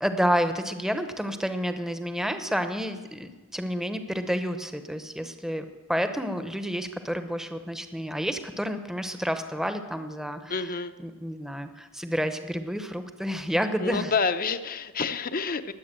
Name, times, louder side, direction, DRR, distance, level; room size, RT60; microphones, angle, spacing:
voice 1, 0.0-14.1, equal, ahead, 8 dB, 0.9 m, -30 dB
voice 2, 10.5-10.9 13.8-15.7, left 5 dB, 40° left, 11 dB, 0.7 m, -28 dB
20.5 x 8.5 x 7.6 m, 1.3 s
head